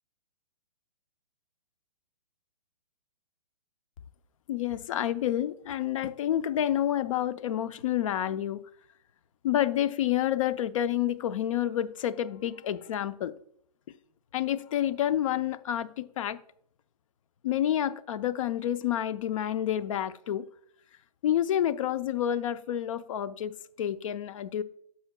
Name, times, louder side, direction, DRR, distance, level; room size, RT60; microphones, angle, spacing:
voice 1, 4.5-8.6 9.4-13.3 14.3-16.4 17.4-20.5 21.2-24.6, left 11 dB, 55° left, 0.6 m, -29 dB
10.0 x 7.5 x 2.2 m
hypercardioid pair, 140°, 21 cm